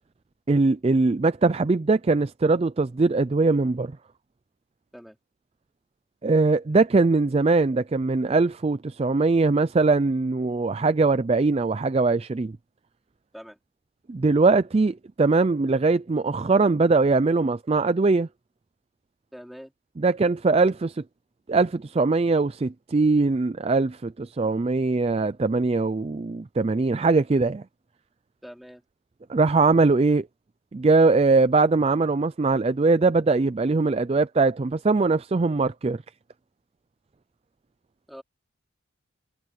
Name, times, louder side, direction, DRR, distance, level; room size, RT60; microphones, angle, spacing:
voice 1, 0.5-3.9 6.2-12.6 14.1-18.3 20.0-21.0 21.5-27.6 29.3-30.3 30.7-36.0, right 3 dB, 30° right, 0.4 m, -21 dB
voice 2, 19.3-19.7 28.4-28.8 38.1-38.2, equal, ahead, 4.5 m, -43 dB
head